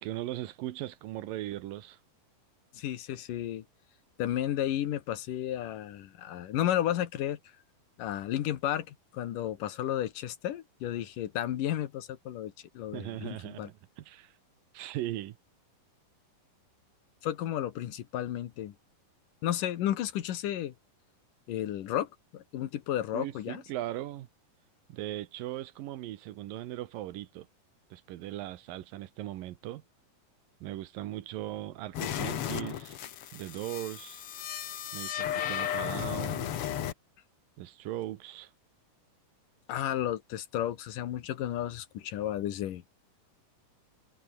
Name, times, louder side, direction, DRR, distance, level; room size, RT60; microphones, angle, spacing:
voice 1, 0.0-2.0 12.9-14.3 14.7-15.4 23.1-24.3 24.9-27.5 27.9-29.8 30.6-33.0 33.3-34.2 34.9-36.5 37.6-38.5, right 14 dB, 85° right, 2.8 m, -38 dB
voice 2, 2.7-3.6 4.2-7.4 8.0-13.7 17.2-18.7 19.4-20.7 21.5-23.6 39.7-42.8, left 12 dB, 75° left, 3.0 m, -33 dB
sound 1, 31.9-36.9, left 10 dB, 60° left, 1.7 m, -34 dB
omnidirectional pair, 3.9 m